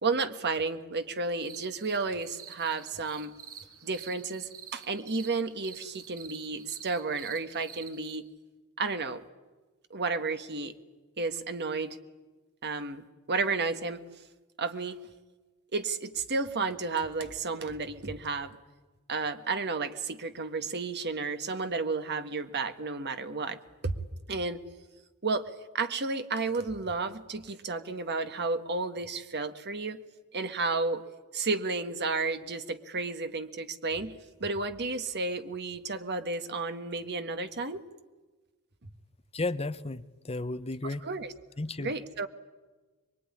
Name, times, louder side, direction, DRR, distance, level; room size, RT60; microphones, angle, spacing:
voice 1, 0.0-3.4 3.8-8.3 8.8-9.2 9.9-10.7 11.2-12.0 12.6-14.0 14.6-15.0 15.7-18.6 19.1-23.6 23.8-23.9 24.3-24.6 25.2-25.5 25.7-30.0 30.3-31.0 31.3-37.8 41.0-41.3 41.8-42.3, right 3 dB, 50° right, 1.6 m, -32 dB
sound 1, 1.3-8.2, right 8 dB, 70° right, 2.6 m, -48 dB
voice 2, 39.3-41.1 41.6-41.9, left 2 dB, 25° left, 0.9 m, -33 dB
24.0 x 23.5 x 9.9 m
head